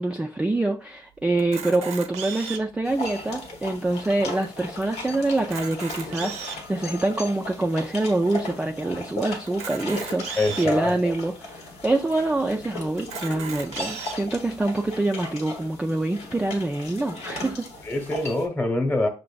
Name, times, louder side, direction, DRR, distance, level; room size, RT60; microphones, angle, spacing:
voice 1, 0.0-17.7, right 2 dB, 10° right, 0.3 m, -25 dB
Camera, 1.4-2.8 3.4-3.5 3.7-3.9 4.4-4.5 5.3-6.7 7.3-7.4 9.5-10.7 11.4-11.5 11.8-11.9 13.0-14.2, right 7 dB, 85° right, 0.6 m, -36 dB
sound 1, 2.8-18.5, left 2 dB, 85° left, 1.0 m, -37 dB
voice 2, 10.3-11.1 17.8-19.1, left 2 dB, 15° left, 1.0 m, -25 dB
6.1 x 2.5 x 2.3 m
cardioid pair, 90°, 11 cm